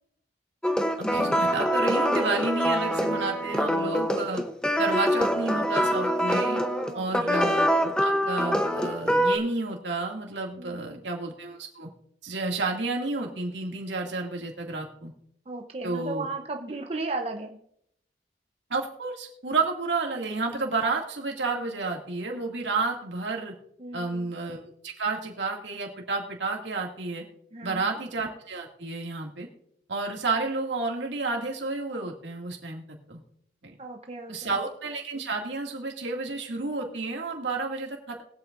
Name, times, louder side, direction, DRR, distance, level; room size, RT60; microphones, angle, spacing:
sound 1, 0.6-9.4, equal, 5° left, 0.8 m, -25 dB
voice 1, 1.0-4.4 4.8-6.6 6.9-11.9 12.2-15.1 15.8-16.3 18.7-23.5 23.9-27.2 27.6-29.5 29.9-32.8 33.1-33.2 33.6-33.7 34.3-38.2, right 3 dB, 85° right, 1 dB, 2.3 m, -31 dB
voice 2, 6.9-7.3 10.6-11.1 15.5-17.6 23.8-24.3 27.5-27.9 33.8-34.5, right 3 dB, 35° right, 3 dB, 0.8 m, -36 dB
22.0 x 8.2 x 2.5 m, 0.72 s
head